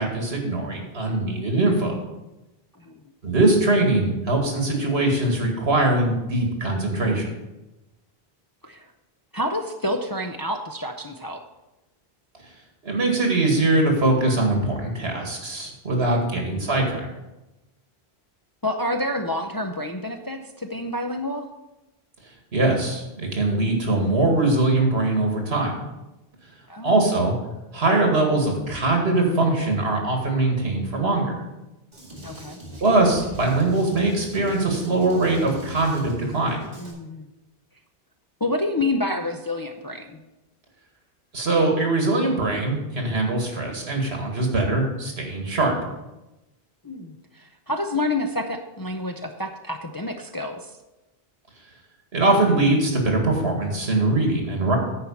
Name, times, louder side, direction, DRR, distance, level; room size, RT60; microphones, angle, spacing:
voice 1, 0.0-2.0 3.2-7.3 12.8-17.0 22.5-25.7 26.8-27.3 27.7-31.3 32.8-36.7 41.3-45.7 52.1-54.8, right 2 dB, 85° right, 2 dB, 2.2 m, -22 dB
voice 2, 9.3-11.4 16.3-16.7 18.6-21.5 26.7-26.9 32.2-32.6 36.7-37.3 38.4-40.2 46.8-50.7, left 1 dB, 30° left, 3 dB, 0.5 m, -28 dB
Drum kit, 31.9-36.9, equal, 40° right, 2.4 m, -40 dB
9.7 x 4.7 x 7.1 m, 0.99 s
omnidirectional pair, 1.1 m